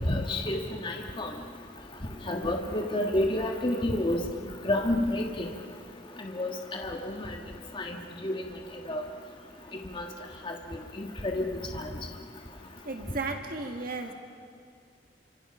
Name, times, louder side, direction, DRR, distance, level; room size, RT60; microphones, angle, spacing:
voice 1, 0.0-1.3 2.2-5.5 6.2-7.4 7.7-8.4 8.9-9.0 9.9-10.1 10.4-10.6 11.0-11.9, left 1 dB, 30° left, 2 dB, 1.6 m, -30 dB
voice 2, 12.8-14.1, right 3 dB, 55° right, 4 dB, 2.0 m, -34 dB
28.5 x 25.5 x 5.8 m, 2.2 s
head